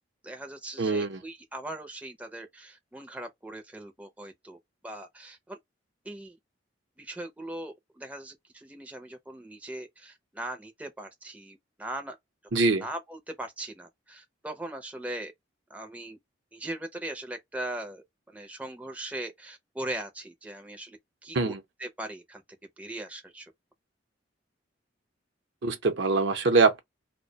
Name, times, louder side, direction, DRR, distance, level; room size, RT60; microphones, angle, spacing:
voice 1, 0.2-4.6 4.8-5.6 6.0-6.4 7.0-12.2 12.5-15.3 15.7-16.2 16.5-22.4 22.8-23.5, right 1 dB, 10° right, 0.5 m, -40 dB
voice 2, 0.8-1.2 12.5-12.8 21.3-21.6 25.6-26.8, right 3 dB, 65° right, 0.6 m, -23 dB
2.3 x 2.1 x 2.6 m
head